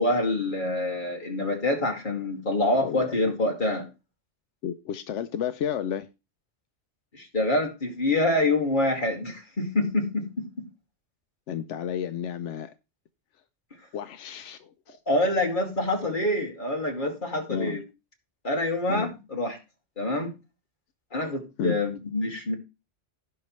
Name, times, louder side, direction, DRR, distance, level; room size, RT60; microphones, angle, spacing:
voice 1, 0.0-3.9 7.1-10.7 15.1-17.8 18.4-19.6 20.0-20.3 21.1-22.6, left 1 dB, 45° left, 2.4 m, -26 dB
voice 2, 2.8-3.2 4.6-6.1 11.5-12.7 13.9-15.0 17.5-17.8 18.9-19.1 21.6-21.8, left 8 dB, 90° left, 1.0 m, -32 dB
17.0 x 5.7 x 3.1 m
omnidirectional pair, 1.2 m